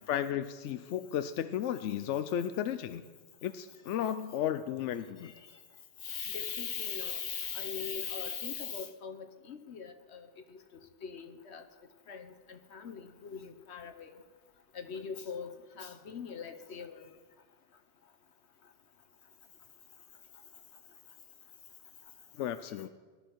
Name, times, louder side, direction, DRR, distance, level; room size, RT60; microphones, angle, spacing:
voice 1, 0.1-3.0 3.4-5.3 22.4-22.9, left 10 dB, 85° left, 11 dB, 0.9 m, -34 dB
voice 2, 6.0-10.3 11.0-11.6 12.1-14.1 14.7-17.0, left 6 dB, 70° left, 8 dB, 1.2 m, -40 dB
19.0 x 12.0 x 4.6 m, 1.4 s
omnidirectional pair, 1.2 m